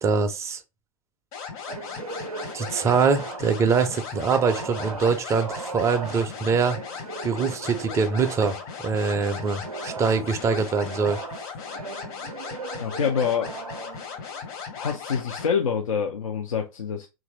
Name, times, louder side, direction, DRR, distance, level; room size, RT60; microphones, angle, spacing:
voice 1, 0.0-0.6 2.5-6.8 7.2-8.6 8.8-11.2, right 5 dB, 15° right, 0.4 m, -23 dB
sound 1, 1.3-15.5, left 6 dB, 40° left, 0.9 m, -37 dB
sound 2, 1.7-3.7 4.1-8.7 9.1-14.5, right 5 dB, 85° right, 0.4 m, -38 dB
voice 2, 12.8-13.5 14.8-17.1, left 6 dB, 70° left, 0.5 m, -26 dB
3.0 x 2.5 x 3.0 m
figure-of-eight pair, 95°, 18 cm